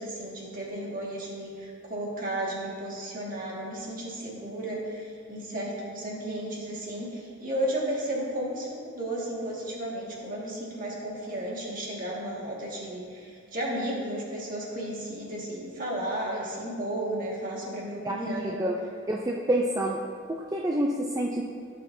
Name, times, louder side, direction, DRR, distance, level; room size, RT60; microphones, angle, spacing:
voice 1, 0.0-18.7, right 1 dB, 40° right, -4 dB, 1.8 m, -33 dB
voice 2, 18.0-18.8 19.1-20.0 20.3-21.4, right 1 dB, 15° right, -1 dB, 0.4 m, -28 dB
15.5 x 6.0 x 2.7 m, 2.2 s
head